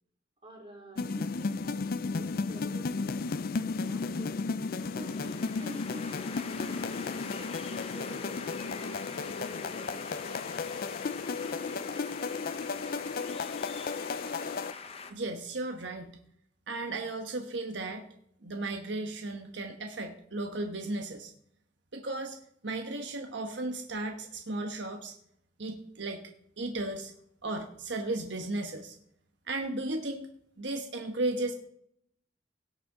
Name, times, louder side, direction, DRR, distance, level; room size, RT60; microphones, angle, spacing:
voice 1, 0.4-3.1 3.6-4.4 4.9-10.1, equal, 30° right, -2 dB, 3.7 m, -49 dB
sound 1, 1.0-14.7, left 4 dB, 55° left, 0.4 m, -34 dB
sound 2, 4.4-15.1, left 5 dB, 35° left, 0.9 m, -44 dB
voice 2, 15.1-16.2 16.7-18.1 18.4-21.3 21.9-22.4 22.6-25.1 25.6-26.3 26.6-27.1 27.4-29.0 29.5-30.3 30.6-31.5, right 2 dB, 80° right, 4 dB, 1.2 m, -35 dB
17.5 x 7.5 x 3.8 m, 0.69 s
head